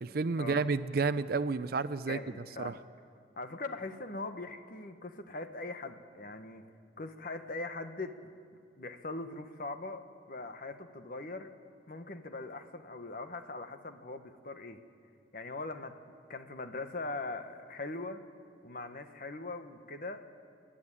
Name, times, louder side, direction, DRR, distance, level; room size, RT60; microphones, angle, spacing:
voice 1, 0.0-2.2 2.6-2.7, right 4 dB, 55° right, 13 dB, 0.5 m, -31 dB
voice 2, 2.0-2.8 3.4-6.7 7.0-8.3 8.8-11.5 11.9-14.8 15.3-16.0 16.3-18.2 18.6-20.2, left 2 dB, 50° left, 8 dB, 1.2 m, -41 dB
26.5 x 11.5 x 9.9 m, 2.3 s
head